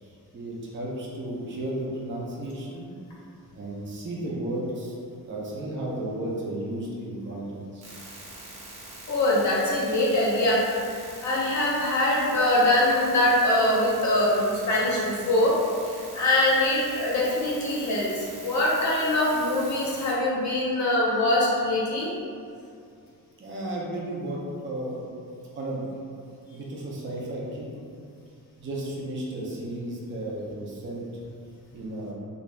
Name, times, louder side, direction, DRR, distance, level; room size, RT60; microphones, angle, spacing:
voice 1, 0.0-2.9 3.5-5.0 5.3-7.8 23.4-25.0 25.5-25.8 26.5-27.7 28.6-31.1 31.7-32.1, right 1 dB, 35° right, -4 dB, 0.5 m, -33 dB
sound 1, 7.8-20.1, right 2 dB, 90° right, 0.9 m, -44 dB
voice 2, 9.1-10.6 10.9-15.6 15.8-22.1 26.5-26.6, left 1 dB, 50° left, -5 dB, 0.7 m, -23 dB
2.7 x 2.5 x 3.2 m, 2.4 s
wide cardioid pair, 150°, 36 cm